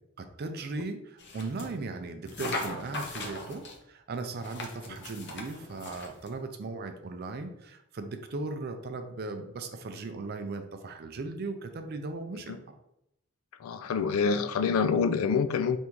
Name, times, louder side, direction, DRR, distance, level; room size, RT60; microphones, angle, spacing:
voice 1, 0.2-12.6, right 3 dB, 50° right, 0.4 m, -37 dB
sound 1, 1.2-1.7 2.3-3.8 4.4-6.3, left 2 dB, 55° left, 0.7 m, -39 dB
voice 2, 13.6-15.8, left 5 dB, 75° left, 0.3 m, -26 dB
3.5 x 2.6 x 4.5 m
head